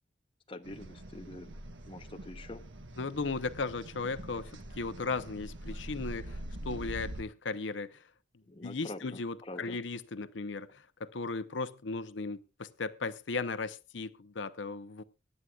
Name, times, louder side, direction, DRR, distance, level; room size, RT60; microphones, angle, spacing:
voice 1, 0.5-1.5 1.8-2.6 8.5-9.8, left 2 dB, 30° left, 0.9 m, -45 dB
sound 1, 0.6-7.2, right 1 dB, 80° right, 1.3 m, -44 dB
voice 2, 3.0-8.0 8.6-15.0, left 3 dB, 80° left, 0.7 m, -36 dB
23.5 x 9.8 x 2.4 m
head